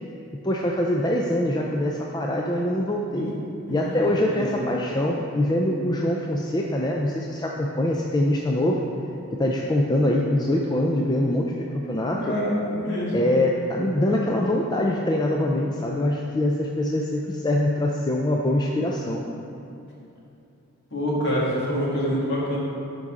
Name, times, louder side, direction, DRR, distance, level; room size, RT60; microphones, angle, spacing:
voice 1, 0.4-3.3 3.7-8.9 9.4-12.4 13.1-19.2, left 1 dB, 20° left, -1 dB, 0.3 m, -24 dB
voice 2, 4.2-4.6 11.9-13.3 20.9-22.6, equal, 50° left, -6 dB, 2.0 m, -26 dB
10.5 x 5.3 x 3.7 m, 2.7 s
head